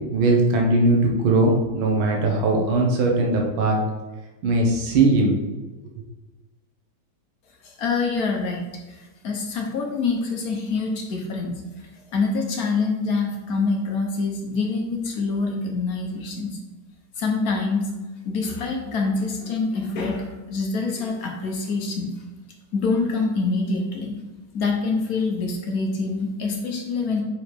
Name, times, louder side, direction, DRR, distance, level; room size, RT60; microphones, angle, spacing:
voice 1, 0.1-3.8 4.4-5.3, right 2 dB, 80° right, 0 dB, 1.8 m, -19 dB
voice 2, 7.6-8.6 9.2-11.6 12.1-16.6 17.2-17.9 18.2-22.1 22.7-24.2 24.5-27.2, left 4 dB, 55° left, 1 dB, 1.1 m, -25 dB
5.1 x 4.9 x 4.4 m, 1.1 s
omnidirectional pair, 2.2 m